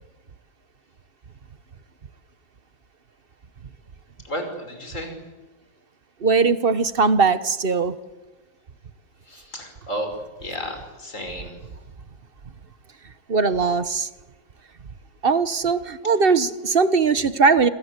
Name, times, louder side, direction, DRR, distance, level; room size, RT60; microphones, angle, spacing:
voice 1, 4.2-5.1 9.3-10.1 10.4-11.6, equal, 40° left, 5 dB, 6.1 m, -32 dB
voice 2, 6.2-8.0 13.3-14.1 15.2-17.7, right 4 dB, 40° right, 13 dB, 1.0 m, -20 dB
27.5 x 26.5 x 8.3 m, 1.1 s
omnidirectional pair, 2.0 m